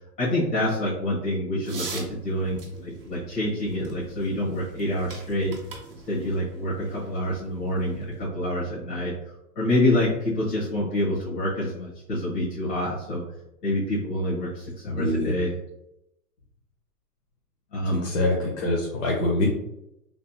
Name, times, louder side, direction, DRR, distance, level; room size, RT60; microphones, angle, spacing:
voice 1, 0.2-5.5 6.1-9.1 9.5-13.2 13.6-15.5 17.7-18.0, left 1 dB, 70° left, -8 dB, 1.5 m, -27 dB
sound 1, 1.6-8.2, right 3 dB, 35° right, 0.5 m, -43 dB
voice 2, 14.9-15.3 18.0-19.5, left 1 dB, 50° left, -3 dB, 0.7 m, -25 dB
3.4 x 2.2 x 2.7 m, 0.86 s
hypercardioid pair, 175°, 49 cm